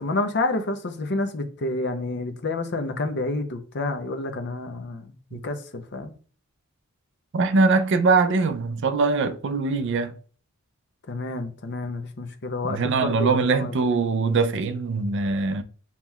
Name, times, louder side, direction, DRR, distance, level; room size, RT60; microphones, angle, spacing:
voice 1, 0.0-6.2 11.1-14.0, left 2 dB, 50° left, 0.6 m, -29 dB
voice 2, 7.3-10.1 12.7-15.6, right 4 dB, 55° right, 0.4 m, -22 dB
7.0 x 2.9 x 2.3 m
head